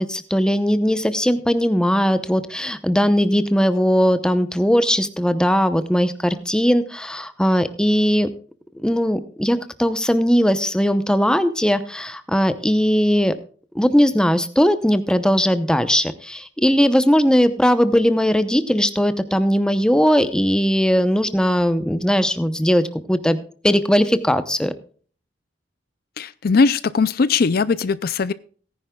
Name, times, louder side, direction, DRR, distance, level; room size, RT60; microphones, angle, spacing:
voice 1, 0.0-8.3 8.8-13.3 13.7-23.4 23.6-24.7, equal, 5° left, 11 dB, 0.8 m, -19 dB
voice 2, 26.2-28.3, left 4 dB, 55° left, 16 dB, 0.4 m, -19 dB
18.0 x 10.0 x 2.3 m, 0.43 s
head